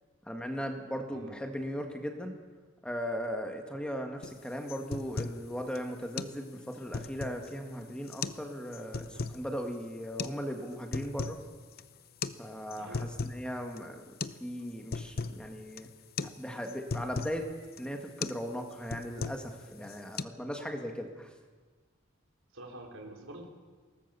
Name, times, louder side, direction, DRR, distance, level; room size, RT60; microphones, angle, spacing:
voice 1, 0.2-2.3 2.8-11.4 12.4-14.1 14.4-15.9 16.4-17.5 17.8-21.3, equal, 5° left, 3 dB, 1.7 m, -38 dB
sound 1, 4.2-4.4 4.7-5.4 5.7-5.8 6.2-6.4 6.7-7.5 8.1-8.4 8.7-9.4 10.2-10.4 10.7-11.4 11.7-11.8 12.2-12.4 12.7-13.4 13.8-13.9 14.2-14.4 14.7-15.4 15.8-15.9 16.2-16.4 16.6-17.4 17.8-17.9 18.2-18.4 18.7-19.5 19.8-20.2, left 4 dB, 50° left, 0.7 m, -37 dB
voice 2, 12.8-13.1 22.5-23.5, right 1 dB, 85° right, 2 dB, 3.8 m, -46 dB
21.5 x 18.5 x 6.9 m, 1.4 s
head